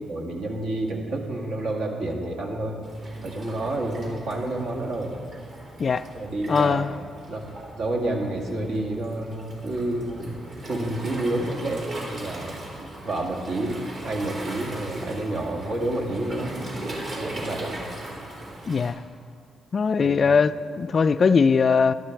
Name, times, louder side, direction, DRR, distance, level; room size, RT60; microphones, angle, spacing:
voice 1, 0.1-2.8 3.2-5.2 6.1-6.8 7.3-7.4 7.8-12.6 13.0-16.6 17.2-17.8 20.0-20.3, right 1 dB, 75° right, -1 dB, 2.0 m, -29 dB
Waves surf, 2.8-18.9, right 1 dB, 60° right, 3.6 m, -39 dB
voice 2, 6.5-6.9 18.7-19.0 19.7-21.9, left 5 dB, 45° left, 13 dB, 0.3 m, -20 dB
12.0 x 11.5 x 4.6 m, 2.3 s
cardioid pair, 80°, 0 cm